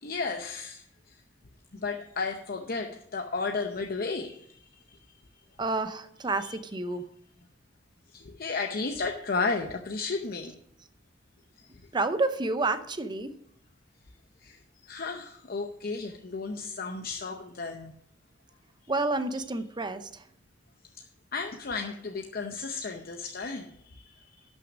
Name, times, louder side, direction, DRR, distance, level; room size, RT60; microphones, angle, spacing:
voice 1, 0.0-0.8 1.7-4.6 6.4-6.6 8.1-10.5 11.6-11.7 14.4-14.6 14.9-17.9 21.0-21.1 21.3-24.4, left 4 dB, 50° left, 4 dB, 0.7 m, -33 dB
voice 2, 5.6-7.1 11.9-13.3 18.9-20.2, right 3 dB, 25° right, 10 dB, 0.6 m, -29 dB
12.0 x 6.2 x 5.2 m, 0.69 s
head